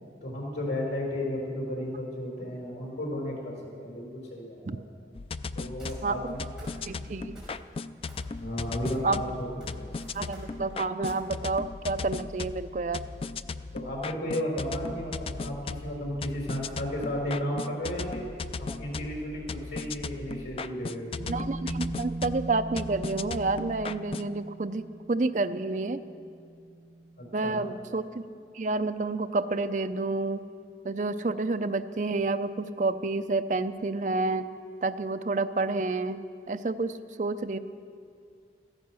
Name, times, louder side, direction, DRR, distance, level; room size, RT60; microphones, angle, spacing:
voice 1, 0.2-3.6 3.8-4.8 5.5-6.5 8.4-9.8 13.7-18.3 18.6-21.2 27.2-27.6, equal, 90° left, -1 dB, 5.4 m, -34 dB
sound 1, 5.1-24.3, left 4 dB, 30° left, 0.3 m, -37 dB
sound 2, 5.8-6.3 6.6-7.1 7.3-7.8 8.1-9.1 9.4-11.2, right 1 dB, 5° right, 5.2 m, -47 dB
voice 2, 6.9-7.4 9.0-9.2 10.1-13.0 21.3-26.0 27.3-28.2 28.5-30.5 30.8-34.5 34.8-37.6, right 3 dB, 45° right, 11 dB, 0.5 m, -29 dB
Bass guitar, 21.2-27.2, right 2 dB, 25° right, 5.3 m, -40 dB
15.0 x 15.0 x 6.3 m, 2.4 s
head